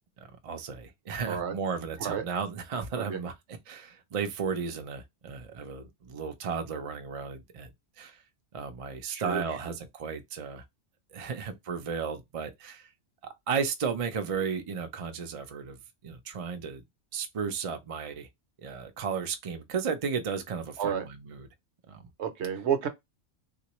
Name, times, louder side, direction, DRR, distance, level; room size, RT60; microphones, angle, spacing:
voice 1, 0.4-3.3 3.7-7.7 8.0-8.2 8.5-10.6 11.1-12.9 13.5-16.8 17.1-18.3 18.6-21.5 21.9-22.1, right 6 dB, 45° right, 0.4 m, -34 dB
voice 2, 9.1-9.4 20.8-21.0 22.2-22.9, right 8 dB, 65° right, 1.0 m, -30 dB
3.6 x 2.5 x 3.0 m
omnidirectional pair, 1.3 m